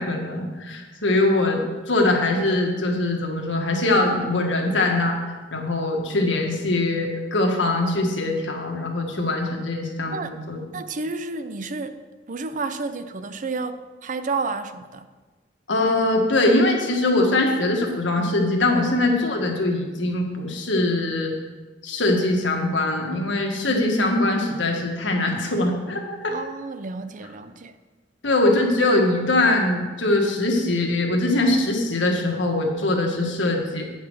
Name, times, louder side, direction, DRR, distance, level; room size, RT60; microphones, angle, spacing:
voice 1, 0.0-1.6 1.9-5.2 5.5-10.6 15.7-21.3 21.8-26.4 28.2-33.8, left 2 dB, 85° left, 1 dB, 1.6 m, -22 dB
voice 2, 10.7-12.0 12.3-15.1 18.9-19.1 26.3-27.7, right 3 dB, 45° right, 11 dB, 0.5 m, -31 dB
8.7 x 6.1 x 6.2 m, 1.3 s
head